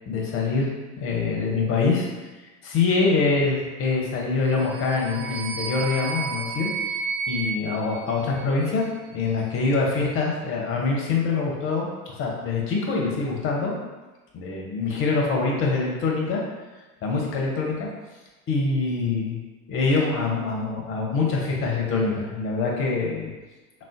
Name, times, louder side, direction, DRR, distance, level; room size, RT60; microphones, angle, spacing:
voice 1, 0.1-0.7 1.0-2.1 2.6-6.7 7.3-13.7 14.3-16.4 17.0-17.9 18.5-19.4 19.7-23.3, left 4 dB, 30° left, -2 dB, 0.6 m, -24 dB
sound 1, 4.5-8.8, right 5 dB, 55° right, 0.6 m, -32 dB
3.5 x 2.0 x 2.5 m, 1.2 s
figure-of-eight pair, 75°, 46 cm